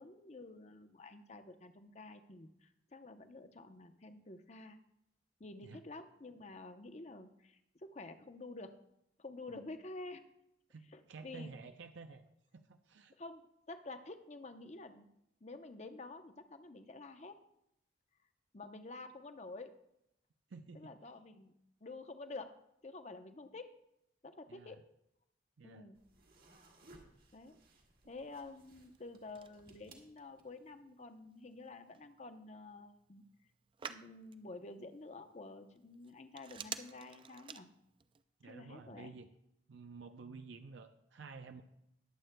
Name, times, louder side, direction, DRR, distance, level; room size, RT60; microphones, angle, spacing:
voice 1, 0.0-4.8 5.4-8.7 9.2-10.2 10.9-11.5 13.2-13.4 13.7-15.1 15.4-17.4 18.5-19.7 20.7-21.5 21.8-22.5 22.8-23.7 24.2-24.8 25.6-26.0 27.3-27.6 28.0-33.2 33.9-37.7 38.4-39.1, left 2 dB, 40° left, 8 dB, 0.7 m, -50 dB
voice 2, 10.7-12.2 12.5-13.1 20.5-20.9 24.5-24.8 25.6-25.9 38.4-39.3 39.7-41.6, right 4 dB, 85° right, 7 dB, 0.5 m, -51 dB
sound 1, 26.0-30.7, right 2 dB, 55° right, 1.7 m, -63 dB
Telephone, 28.6-38.2, right 7 dB, 30° right, 0.3 m, -53 dB
20.5 x 7.8 x 2.2 m, 0.80 s
head